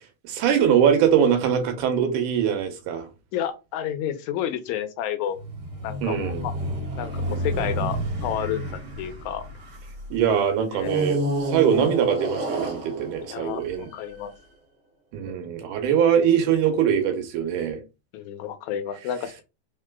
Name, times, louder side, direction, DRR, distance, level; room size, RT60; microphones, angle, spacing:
voice 1, 0.2-3.1 6.0-6.5 10.1-13.9 15.1-17.8, right 8 dB, 85° right, 2.4 m, -22 dB
voice 2, 3.3-5.4 5.8-6.5 7.0-9.4 10.7-10.9 13.3-14.3 15.3-15.6 18.1-19.4, left 10 dB, 75° left, 1.9 m, -31 dB
sound 1, 5.3-10.0 10.8-14.2, right 1 dB, 50° right, 1.2 m, -30 dB
4.8 x 4.0 x 2.2 m
omnidirectional pair, 3.6 m